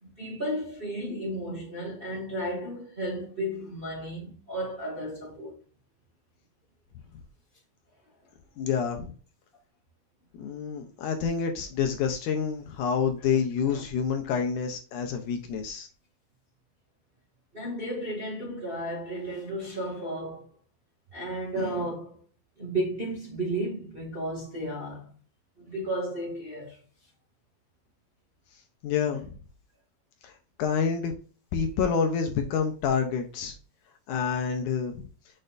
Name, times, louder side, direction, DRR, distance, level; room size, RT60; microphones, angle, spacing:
voice 1, 0.0-5.5 13.3-13.4 13.7-13.8 17.5-20.5 21.1-22.2 22.6-25.1 25.6-26.8 29.1-29.3, right 1 dB, 20° right, 1.6 m, -33 dB
voice 2, 8.6-9.1 10.3-15.9 28.8-29.3 30.2-30.3 30.6-31.1 31.5-33.5 34.1-35.1, left 6 dB, 75° left, 2.0 m, -28 dB
6.5 x 6.5 x 2.6 m
omnidirectional pair, 4.3 m